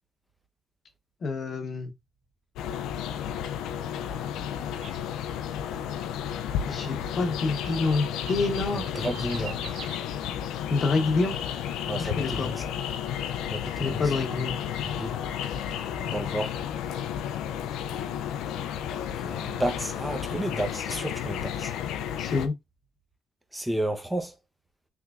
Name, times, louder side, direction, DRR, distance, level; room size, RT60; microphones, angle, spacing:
voice 1, 1.2-1.9 6.7-8.9 10.7-11.4 12.0-12.6 13.8-14.6 22.2-22.5, left 3 dB, 50° left, 0.9 m, -27 dB
sound 1, 2.6-22.5, left 9 dB, 90° left, 0.3 m, -32 dB
sound 2, 4.8-5.0 7.3-10.0, right 5 dB, 90° right, 1.5 m, -43 dB
voice 2, 8.7-9.6 11.9-12.6 13.5-14.1 14.8-15.2 16.0-16.5 19.2-21.7 23.5-24.3, right 1 dB, 5° right, 0.7 m, -32 dB
3.4 x 3.1 x 2.4 m
cardioid pair, 90°, 0 cm